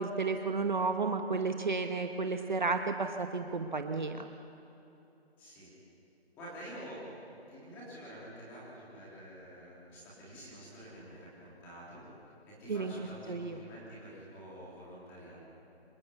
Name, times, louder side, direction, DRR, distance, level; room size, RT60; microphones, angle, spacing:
voice 1, 0.0-4.3 12.7-12.9 13.3-13.6, right 4 dB, 45° right, 6 dB, 1.1 m, -32 dB
voice 2, 5.4-5.7 6.3-7.1 7.5-12.0 12.4-15.4, equal, 5° left, -7 dB, 3.4 m, -48 dB
26.5 x 14.0 x 8.2 m, 3.0 s
figure-of-eight pair, 175°, 32 cm